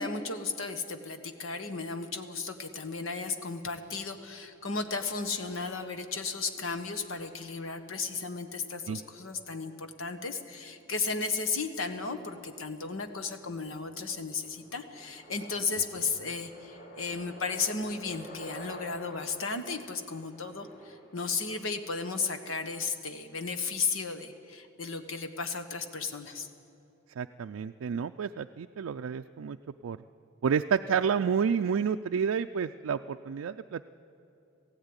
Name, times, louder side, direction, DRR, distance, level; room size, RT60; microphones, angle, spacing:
voice 1, 0.0-26.5, left 4 dB, 90° left, 8 dB, 1.4 m, -34 dB
sound 1, 10.7-21.7, equal, 45° left, 3.6 m, -51 dB
voice 2, 27.2-29.6 29.8-30.0 30.4-33.9, right 6 dB, 85° right, 7 dB, 0.4 m, -30 dB
17.5 x 15.5 x 9.7 m, 2.8 s
head